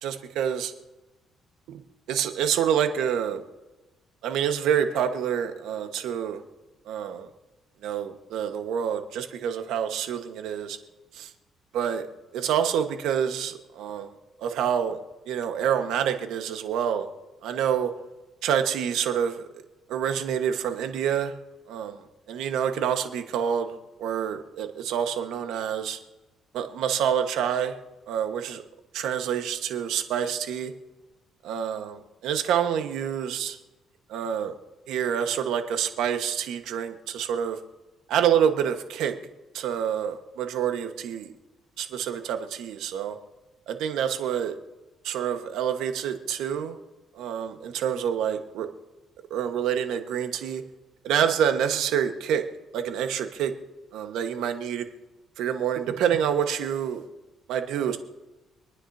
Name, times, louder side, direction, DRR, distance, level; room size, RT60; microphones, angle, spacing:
voice 1, 0.0-0.7 1.7-3.4 4.2-6.4 6.9-7.3 7.8-10.8 11.1-11.3 11.7-12.0 12.3-14.1 14.4-15.0 15.3-17.1 17.4-17.9 18.4-19.4 19.9-21.3 21.7-26.0 26.5-27.7 28.1-28.6 28.9-30.7 31.4-33.6 34.1-34.5 34.9-37.6 38.1-39.1 39.5-41.3 41.8-43.2 43.7-44.6 45.0-46.8 47.1-48.7 49.3-50.6 51.0-52.4 52.7-53.5 53.9-54.9 55.4-57.0 57.5-58.0, right 8 dB, 85° right, 6 dB, 1.4 m, -27 dB
26.5 x 9.9 x 2.8 m, 1.1 s
cardioid pair, 105°, 0 cm